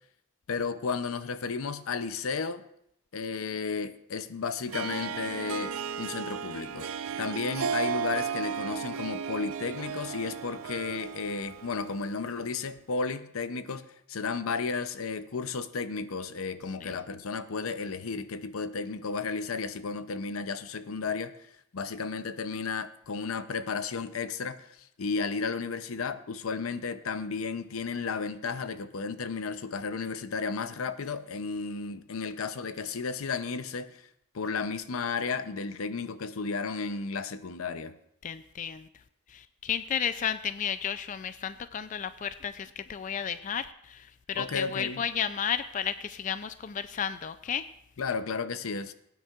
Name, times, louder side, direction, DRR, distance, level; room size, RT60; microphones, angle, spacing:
voice 1, 0.5-2.6 3.1-6.9 7.2-21.3 21.7-34.0 34.3-37.9 44.3-45.0 48.0-48.9, left 4 dB, 90° left, 12 dB, 0.6 m, -33 dB
Harp, 4.7-12.4, right 7 dB, 85° right, 0.5 m, -35 dB
voice 2, 38.2-38.9 39.3-47.7, left 8 dB, 35° left, 12 dB, 0.3 m, -33 dB
18.5 x 9.3 x 2.4 m, 0.76 s
head